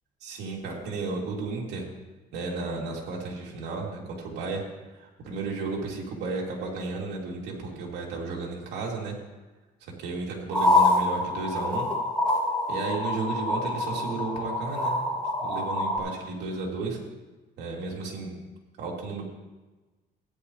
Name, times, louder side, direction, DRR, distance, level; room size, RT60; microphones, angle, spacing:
voice 1, 0.2-1.8 2.3-4.6 4.9-9.1 10.0-11.8 12.7-14.9 15.4-17.0 17.6-18.3 18.8-19.2, right 3 dB, 80° right, -2 dB, 3.1 m, -33 dB
sound 1, 10.5-16.0, left 2 dB, 5° left, 2.8 m, -26 dB
16.0 x 10.5 x 3.3 m, 1.2 s
cardioid pair, 110°, 17 cm